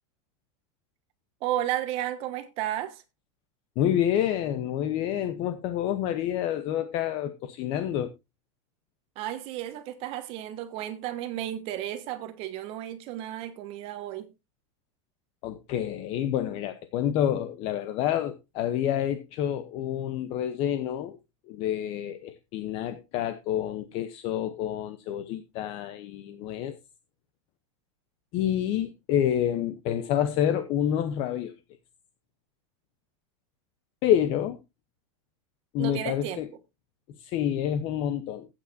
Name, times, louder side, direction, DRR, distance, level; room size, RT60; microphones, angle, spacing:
voice 1, 1.4-3.0 9.1-14.3 35.8-36.4, right 12 dB, 35° right, 1.4 m, -33 dB
voice 2, 3.8-8.1 15.4-21.2 21.5-26.8 28.3-31.5 34.0-34.6 35.7-36.5 37.2-38.5, left 10 dB, 35° left, 0.8 m, -28 dB
15.5 x 9.0 x 2.6 m
supercardioid pair, 165°, 16 cm